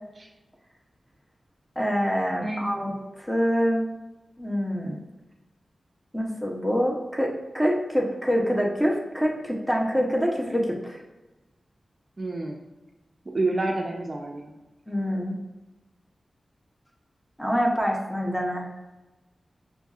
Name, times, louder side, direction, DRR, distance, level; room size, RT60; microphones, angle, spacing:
voice 1, 1.8-3.9 4.4-5.0 6.1-11.0 14.9-15.4 17.4-18.7, equal, 5° left, -2 dB, 0.7 m, -25 dB
voice 2, 2.4-3.0 12.2-12.6 13.3-14.5, right 2 dB, 40° right, 0 dB, 0.4 m, -29 dB
6.1 x 2.6 x 2.4 m, 1.1 s
wide cardioid pair, 105°, 0 cm